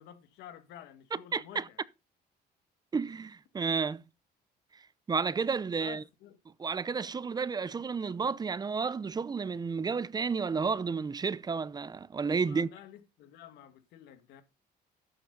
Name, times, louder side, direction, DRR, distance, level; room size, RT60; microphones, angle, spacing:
voice 1, 0.0-1.8 5.8-6.4 12.4-14.4, left 10 dB, 85° left, 2.0 m, -50 dB
voice 2, 1.1-1.7 2.9-4.0 4.7-4.8 5.1-6.0 6.6-12.7, right 5 dB, 25° right, 0.6 m, -31 dB
12.5 x 8.9 x 3.9 m
cardioid pair, 110°, 17 cm